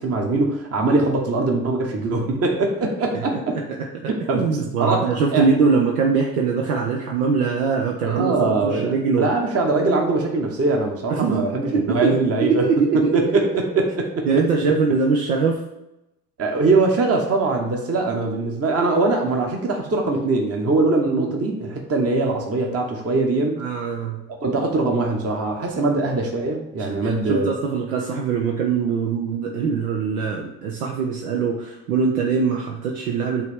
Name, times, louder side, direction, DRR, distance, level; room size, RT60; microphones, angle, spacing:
voice 1, 0.0-3.6 4.1-4.5 4.8-5.5 8.0-12.7 13.1-13.9 14.7-14.8 16.4-23.6 24.3-27.5, right 3 dB, 35° right, 2 dB, 1.1 m, -22 dB
voice 2, 3.9-9.3 11.1-11.5 11.7-13.4 14.2-15.7 21.1-21.3 23.6-24.2 26.8-33.4, right 5 dB, 80° right, 0 dB, 0.7 m, -22 dB
8.2 x 3.3 x 3.5 m, 0.90 s
hypercardioid pair, 55°, 43 cm